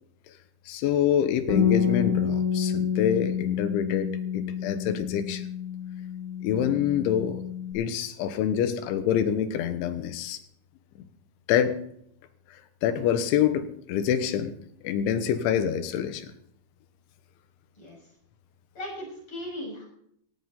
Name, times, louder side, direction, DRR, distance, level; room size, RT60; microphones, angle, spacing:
voice 1, 0.7-5.5 6.4-7.4 7.7-10.4 11.5-11.8 12.8-14.6 14.8-16.3, left 9 dB, 85° left, 10 dB, 3.5 m, -26 dB
Bass guitar, 1.5-7.7, left 8 dB, 10° right, 4.0 m, -28 dB
voice 2, 18.7-19.9, left 1 dB, 30° left, -2 dB, 6.8 m, -37 dB
17.5 x 16.0 x 4.1 m, 0.68 s
omnidirectional pair, 5.4 m